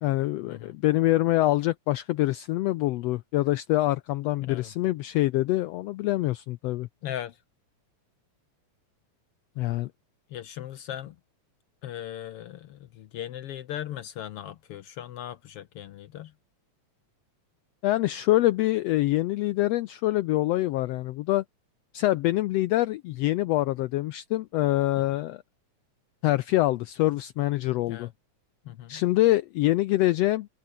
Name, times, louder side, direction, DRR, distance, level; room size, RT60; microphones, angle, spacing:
voice 1, 0.0-6.9 9.6-9.9 17.8-21.4 21.9-25.4 26.2-28.1 28.9-30.5, left 16 dB, 90° left, 1.4 m, -25 dB
voice 2, 7.0-7.4 10.3-11.2 11.8-16.3 27.9-28.1 28.6-29.0, left 11 dB, 75° left, 1.4 m, -38 dB
open air
omnidirectional pair, 3.5 m